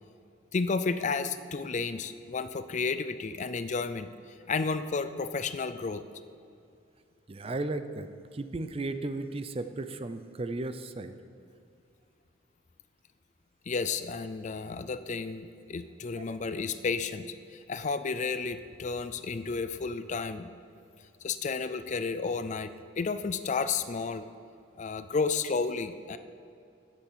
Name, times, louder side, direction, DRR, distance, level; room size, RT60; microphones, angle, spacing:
voice 1, 0.5-4.1 4.5-6.0 13.7-20.5 21.2-24.3 24.8-26.2, left 4 dB, 40° left, 12 dB, 0.4 m, -32 dB
voice 2, 7.3-8.1 8.3-11.1 16.2-16.4, right 2 dB, 30° right, 10 dB, 0.5 m, -35 dB
10.5 x 8.3 x 7.3 m, 2.5 s
head